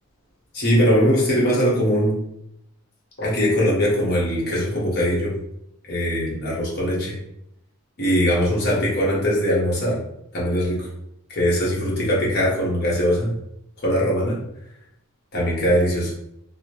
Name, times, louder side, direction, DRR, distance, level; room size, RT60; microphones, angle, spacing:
voice 1, 0.5-2.2 3.2-5.4 5.9-7.2 8.0-10.0 10.3-10.9 11.3-13.3 13.8-14.4 15.3-16.1, equal, 45° left, -5 dB, 0.9 m, -21 dB
2.7 x 2.1 x 2.8 m, 0.77 s
head